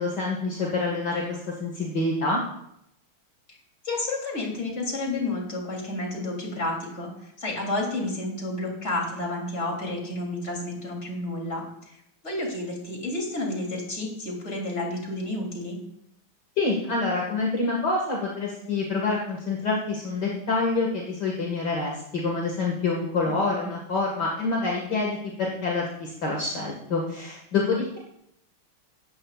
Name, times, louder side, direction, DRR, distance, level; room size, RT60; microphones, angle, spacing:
voice 1, 0.0-2.4 16.6-28.0, left 3 dB, 50° left, -2 dB, 2.5 m, -27 dB
voice 2, 3.8-12.0 12.2-15.8 23.3-23.7, left 2 dB, 30° left, -1 dB, 3.5 m, -31 dB
17.5 x 14.0 x 2.5 m, 0.77 s
omnidirectional pair, 2.3 m